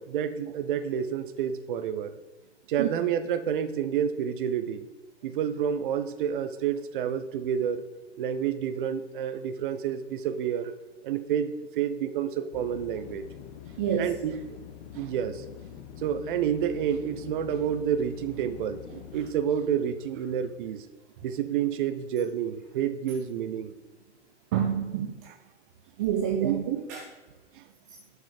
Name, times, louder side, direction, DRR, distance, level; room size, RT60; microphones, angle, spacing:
voice 1, 0.0-2.2 2.7-4.9 5.2-7.8 8.2-10.7 11.0-13.3 14.0-14.6 14.9-15.4 16.0-18.8 19.1-20.9 21.2-23.7 25.3-25.4 26.4-26.6 27.5-27.6, right 8 dB, 45° right, 11 dB, 0.8 m, -29 dB
sound 1, 12.5-19.3, left 10 dB, 35° left, 1.1 m, -45 dB
voice 2, 13.8-14.2 18.9-19.0 24.5-25.3 26.0-27.1, right 8 dB, 15° right, 1 dB, 0.3 m, -28 dB
8.5 x 4.9 x 6.5 m, 1.1 s
figure-of-eight pair, 110°, 36 cm